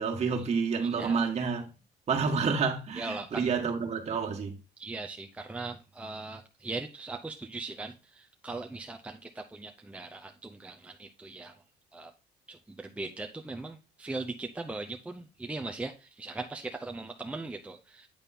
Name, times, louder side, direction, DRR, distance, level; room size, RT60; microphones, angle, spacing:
voice 1, 0.0-1.6 2.1-4.5, right 5 dB, 40° right, 1.7 m, -29 dB
voice 2, 0.8-1.2 2.9-3.5 4.8-11.6 11.9-12.1 12.5-18.1, right 3 dB, 10° right, 0.6 m, -39 dB
9.0 x 3.7 x 4.2 m
cardioid pair, 110°, 17 cm